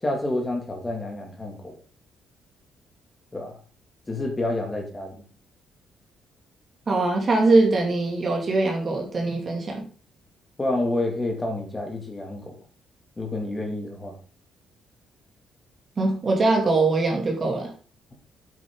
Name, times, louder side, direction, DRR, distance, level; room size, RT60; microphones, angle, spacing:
voice 1, 0.0-1.7 3.3-3.6 4.1-5.2 10.6-12.6 13.2-14.2, left 2 dB, 15° left, 2 dB, 2.7 m, -29 dB
voice 2, 6.9-9.8 16.0-17.7, right 3 dB, 30° right, 0 dB, 2.7 m, -22 dB
8.8 x 8.4 x 3.9 m, 0.38 s
cardioid pair, 180°, 0 cm